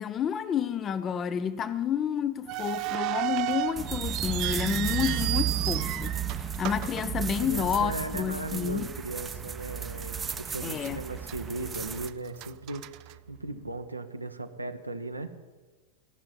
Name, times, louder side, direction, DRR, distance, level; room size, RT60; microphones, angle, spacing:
voice 1, 0.0-8.9 10.6-11.0, left 8 dB, 25° left, 0.7 m, -30 dB
sound 1, 2.5-7.8 8.1-8.2 8.9-9.1 9.6-9.7 10.3-10.9 11.2-13.7, right 19 dB, 40° right, 0.5 m, -34 dB
sound 2, 3.8-12.1, right 8 dB, 20° right, 0.8 m, -34 dB
voice 2, 7.4-15.3, right 2 dB, 85° right, 1.0 m, -37 dB
16.5 x 7.1 x 9.4 m
figure-of-eight pair, 90°, 0 cm